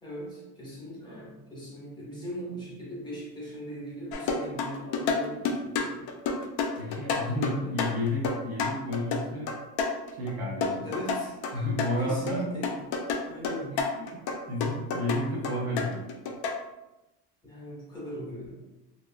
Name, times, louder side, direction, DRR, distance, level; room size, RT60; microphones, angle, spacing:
voice 1, 0.0-6.1 7.2-7.8 10.8-11.7 12.0-12.7 13.2-13.9 17.4-18.6, equal, 10° left, -6 dB, 0.6 m, -39 dB
sound 1, 4.1-10.3 10.6-12.4 12.6-16.6, left 4 dB, 65° left, 0.5 m, -30 dB
voice 2, 6.8-9.5 10.1-10.9 11.5-12.5 13.7-16.1, left 1 dB, 40° right, -3 dB, 0.5 m, -32 dB
2.7 x 2.4 x 2.4 m, 0.98 s
cardioid pair, 165°, 43 cm